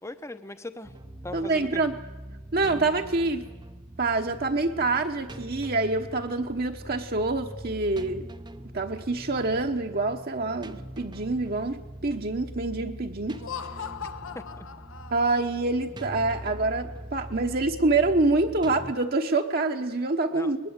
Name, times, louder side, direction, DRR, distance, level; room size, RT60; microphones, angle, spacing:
voice 1, 0.0-0.9 1.2-1.8 14.3-14.7 20.3-20.5, left 1 dB, 15° left, 11 dB, 0.9 m, -39 dB
sound 1, 0.8-18.9, right 1 dB, 20° right, 0.7 m, -42 dB
voice 2, 1.3-2.0 2.5-3.5 4.0-8.2 8.7-13.4 15.1-20.7, right 3 dB, 45° right, 4 dB, 1.1 m, -26 dB
Laughter, 13.3-15.6, left 7 dB, 70° left, 1.0 m, -39 dB
21.5 x 20.5 x 8.3 m, 1.1 s
head